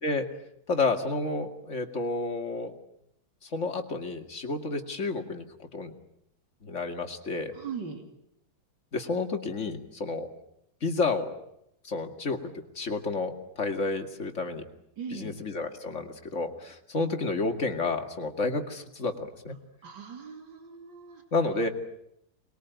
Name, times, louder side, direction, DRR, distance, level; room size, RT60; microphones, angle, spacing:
voice 1, 0.7-2.7 3.4-5.9 6.6-7.6 8.9-10.3 10.8-11.3 11.8-14.7 15.1-19.6 21.3-21.7, left 3 dB, 35° left, 5 dB, 2.5 m, -30 dB
voice 2, 7.5-8.0 15.0-15.4 19.8-21.2, right 6 dB, 65° right, 4 dB, 3.6 m, -40 dB
25.0 x 21.5 x 9.4 m, 0.79 s
omnidirectional pair, 2.2 m